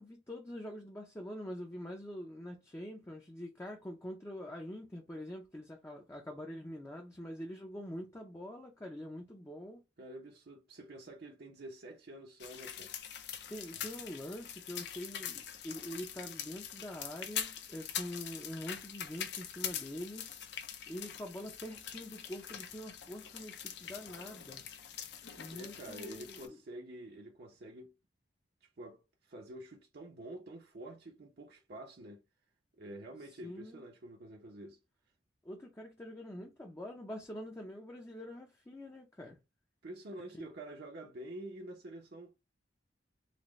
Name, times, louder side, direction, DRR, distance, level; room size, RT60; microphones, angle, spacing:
voice 1, 0.0-9.8 13.5-20.2 20.9-24.6 25.4-26.6 33.4-33.8 35.4-39.4 40.3-40.5, equal, 15° left, 0.5 m, -45 dB
voice 2, 10.0-12.9 25.5-27.9 28.6-32.2 32.7-34.8 39.8-42.3, right 1 dB, 60° right, 0.7 m, -48 dB
sound 1, 12.4-26.5, left 9 dB, 70° left, 0.6 m, -43 dB
4.1 x 2.1 x 3.1 m
head